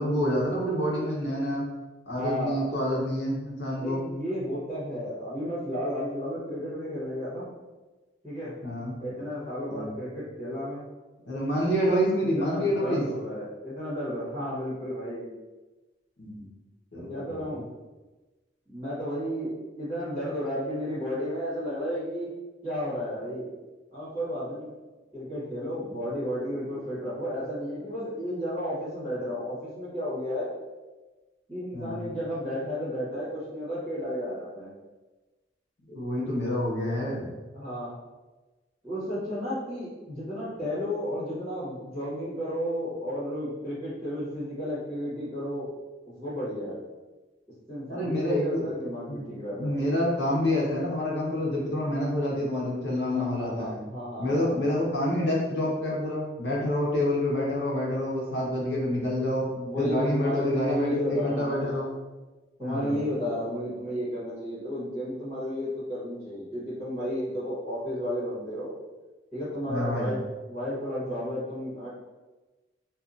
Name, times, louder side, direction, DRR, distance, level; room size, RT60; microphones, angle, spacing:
voice 1, 0.0-1.7 2.1-4.1 8.6-9.0 9.7-9.9 11.3-13.0 16.2-16.5 16.9-17.5 31.7-32.1 35.9-37.3 47.9-48.6 49.1-49.2 49.6-53.8 54.2-59.4 59.8-61.9 62.6-62.9 69.7-70.2, left 1 dB, 65° left, -4 dB, 0.8 m, -27 dB
voice 2, 2.1-2.7 3.7-7.5 8.2-8.5 9.0-10.8 12.4-15.3 16.9-17.7 18.7-22.3 22.6-23.5 23.9-24.7 25.1-30.5 31.5-34.7 37.5-38.0 38.8-45.7 46.1-46.8 47.7-49.8 53.1-54.7 59.2-61.9 62.6-68.7 69.3-70.2 70.5-71.9, equal, 20° right, -13 dB, 1.1 m, -33 dB
2.7 x 2.3 x 2.4 m, 1.2 s
head